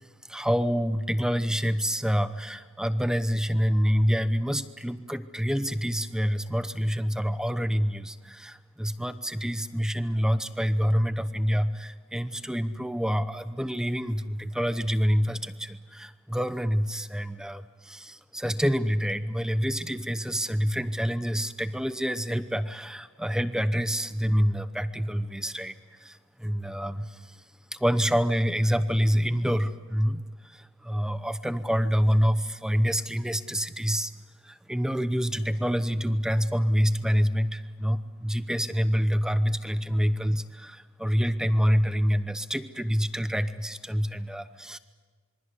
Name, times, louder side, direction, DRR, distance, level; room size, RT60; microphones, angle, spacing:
voice 1, 0.3-25.7 26.0-27.4 27.7-30.2 30.5-34.1 34.4-44.8, equal, 5° right, 12 dB, 0.8 m, -27 dB
27.0 x 23.0 x 8.1 m, 1.5 s
head